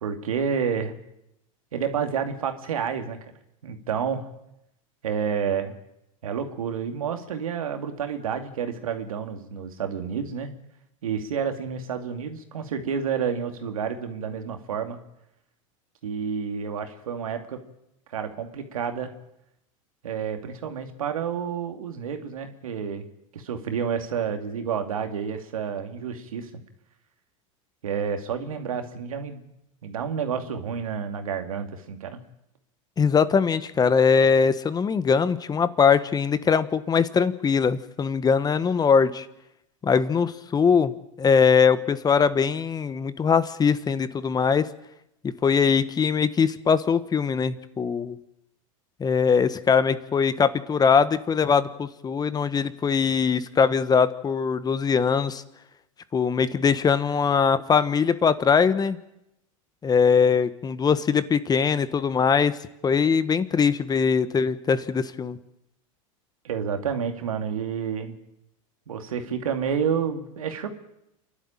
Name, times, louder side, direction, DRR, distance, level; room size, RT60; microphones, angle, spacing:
voice 1, 0.0-1.0 1.7-3.2 3.6-4.3 5.0-5.8 6.2-10.5 11.0-15.0 16.0-17.6 18.1-19.1 20.0-23.1 23.3-26.5 27.8-29.4 29.8-32.2 66.4-68.2 68.9-70.7, right 7 dB, 85° right, 6 dB, 2.5 m, -29 dB
voice 2, 33.0-39.3 39.8-40.9 41.2-44.7 45.4-48.2 49.0-55.4 56.1-59.0 59.8-62.5 62.8-65.4, left 6 dB, 20° left, 14 dB, 1.2 m, -21 dB
28.0 x 12.0 x 8.9 m, 0.86 s
hypercardioid pair, 105°, 17 cm